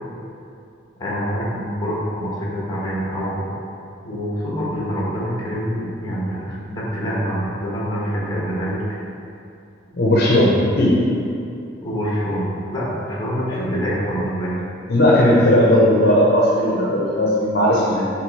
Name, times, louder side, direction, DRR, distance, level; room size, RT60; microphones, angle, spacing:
voice 1, 1.0-3.6 4.0-9.0 11.8-14.5 16.7-17.0, equal, 20° left, -6 dB, 1.3 m, -25 dB
voice 2, 9.9-11.0 13.7-13.8 14.9-18.1, left 1 dB, 50° left, -4 dB, 0.7 m, -16 dB
6.5 x 3.1 x 5.3 m, 2.6 s
head